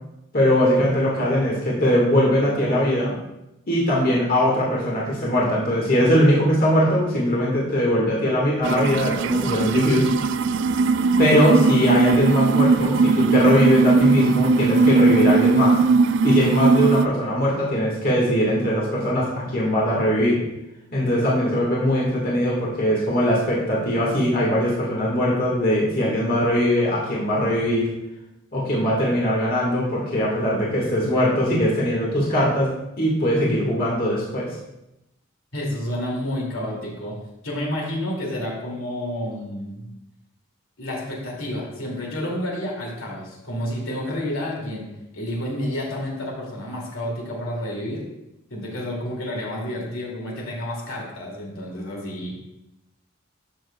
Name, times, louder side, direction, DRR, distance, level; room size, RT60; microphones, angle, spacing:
voice 1, 0.3-3.1 3.7-10.1 11.2-15.8 16.2-20.4 20.9-27.9 28.5-34.6, equal, 45° left, -4 dB, 1.7 m, -21 dB
sound 1, 8.6-17.1, right 4 dB, 60° right, 0.3 m, -19 dB
voice 2, 35.5-37.2 37.4-39.9 40.8-44.9 45.1-48.0 48.5-52.3, left 1 dB, 80° left, -3 dB, 2.4 m, -30 dB
12.5 x 6.3 x 2.3 m, 0.90 s
head